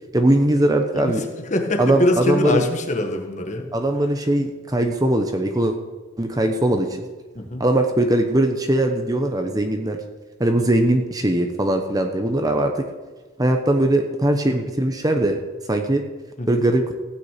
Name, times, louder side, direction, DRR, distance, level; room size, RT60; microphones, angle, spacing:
voice 1, 0.1-1.2 1.8-2.6 3.7-5.7 6.2-6.9 7.6-10.0 10.4-12.8 13.4-15.4 15.7-16.0 16.5-16.8, right 1 dB, 20° right, 4 dB, 0.9 m, -20 dB
voice 2, 1.5-3.7 7.3-7.6 16.4-16.6, left 1 dB, 35° left, 3 dB, 1.5 m, -23 dB
16.0 x 6.1 x 8.3 m, 1.3 s
head